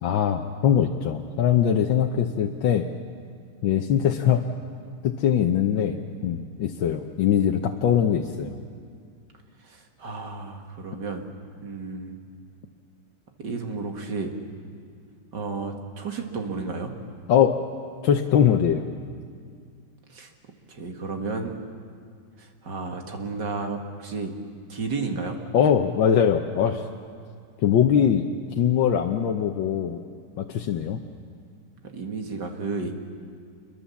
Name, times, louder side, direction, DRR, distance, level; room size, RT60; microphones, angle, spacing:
voice 1, 0.0-2.9 3.6-4.4 5.0-8.5 17.3-17.6 18.0-18.9 25.5-26.8 27.6-28.3 28.6-30.0 30.4-31.0, left 8 dB, 85° left, 3 dB, 1.7 m, -22 dB
voice 2, 9.6-11.3 11.6-12.2 13.4-14.3 15.3-16.9 20.1-20.3 20.7-21.6 22.4-24.3 24.7-25.4 31.9-32.9, right 4 dB, 65° right, 4 dB, 2.5 m, -32 dB
27.5 x 23.0 x 7.2 m, 2.2 s
omnidirectional pair, 2.0 m